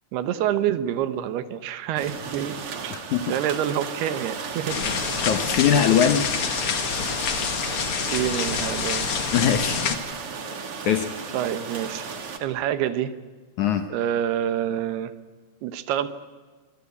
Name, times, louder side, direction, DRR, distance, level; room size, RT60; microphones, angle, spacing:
voice 1, 0.1-2.5 2.8-3.0 3.3-4.8 8.1-9.1 11.3-12.1 12.4-13.1 13.9-15.1 15.6-16.1, right 10 dB, 75° right, 12 dB, 3.0 m, -27 dB
sound 1, 2.0-12.4, right 5 dB, 45° right, 2.2 m, -35 dB
voice 2, 2.9-3.2 5.2-6.3 9.3-9.8 10.9-11.1 13.6-13.9, left 8 dB, 70° left, 7 dB, 1.9 m, -21 dB
sound 2, 4.7-10.0, left 6 dB, 50° left, 1.9 m, -27 dB
25.5 x 24.0 x 8.4 m, 1.4 s
omnidirectional pair, 4.7 m